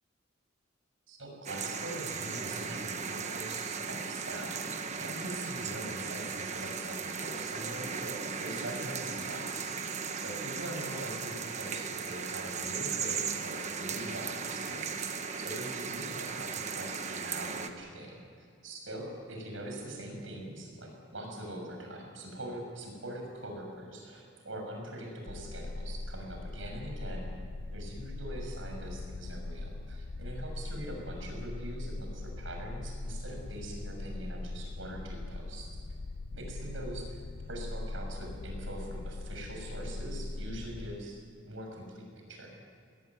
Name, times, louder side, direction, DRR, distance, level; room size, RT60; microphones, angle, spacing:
voice 1, 1.1-4.7 4.9-9.8 10.1-27.3 27.7-35.8 36.3-37.2 37.5-41.2 41.4-42.0 42.3-42.5, right 1 dB, 85° right, 1 dB, 6.8 m, -42 dB
sound 1, 1.5-17.7, right 5 dB, 35° right, 1.3 m, -37 dB
sound 2, 25.3-41.0, left 2 dB, 55° left, 0.5 m, -40 dB
20.5 x 18.5 x 9.5 m, 2.3 s
head